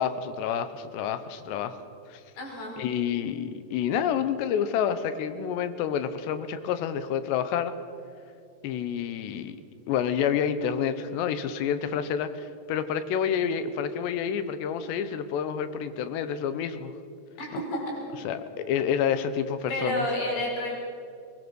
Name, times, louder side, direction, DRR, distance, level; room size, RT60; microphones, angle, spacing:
voice 1, 0.0-1.8 2.1-2.2 2.8-7.7 8.6-9.6 9.9-16.9 17.5-17.6 18.2-20.0, left 8 dB, 85° left, 11 dB, 3.1 m, -28 dB
voice 2, 2.4-2.8 17.4-17.9 18.2-18.3 19.7-20.8, left 1 dB, 65° left, -2 dB, 7.0 m, -30 dB
23.0 x 20.0 x 6.4 m, 2.4 s
omnidirectional pair, 4.9 m